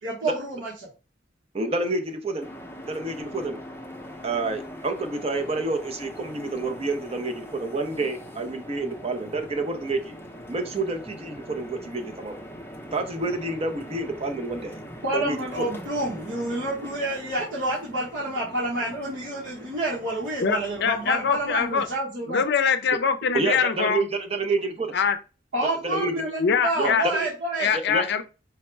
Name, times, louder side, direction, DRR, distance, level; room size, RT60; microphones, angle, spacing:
voice 1, 0.0-0.7 15.0-22.4 25.5-27.7, right 1 dB, 75° right, 1.2 m, -28 dB
voice 2, 1.5-2.5 2.8-3.6 4.2-10.1 10.5-12.3 12.9-14.8 15.1-15.7 23.3-24.9 25.8-26.3 26.8-27.3 27.7-28.0, right 3 dB, 35° right, 0.6 m, -28 dB
sound 1, 2.4-22.0, equal, 10° left, 0.7 m, -42 dB
voice 3, 20.4-21.9 22.3-24.1 24.9-25.2 26.4-27.1 27.6-28.2, left 6 dB, 65° left, 0.5 m, -23 dB
4.8 x 2.1 x 4.4 m
head